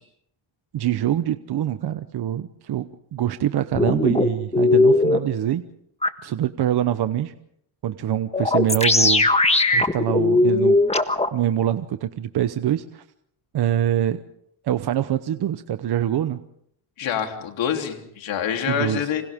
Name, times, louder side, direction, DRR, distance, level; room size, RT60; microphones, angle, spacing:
voice 1, 0.7-5.6 6.2-7.3 7.8-9.3 9.7-10.8 11.3-13.0 13.5-14.2 14.6-16.4 18.7-19.1, right 11 dB, 55° right, 10 dB, 1.0 m, -24 dB
sound 1, 3.8-5.2 6.0-6.1 8.3-11.3, left 2 dB, 15° left, 1.5 m, -18 dB
voice 2, 17.0-19.2, left 8 dB, 75° left, 3 dB, 3.5 m, -26 dB
29.0 x 26.5 x 3.7 m, 0.71 s
cardioid pair, 105°, 46 cm